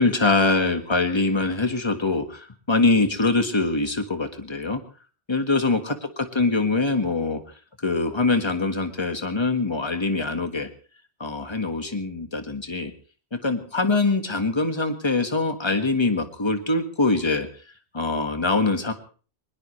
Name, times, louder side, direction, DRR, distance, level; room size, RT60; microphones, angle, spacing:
voice 1, 0.0-4.8 5.3-7.4 7.8-10.7 11.2-12.9 13.3-17.5 17.9-18.9, left 3 dB, 25° left, 7 dB, 1.7 m, -23 dB
21.5 x 20.5 x 3.3 m, 0.38 s
omnidirectional pair, 1.1 m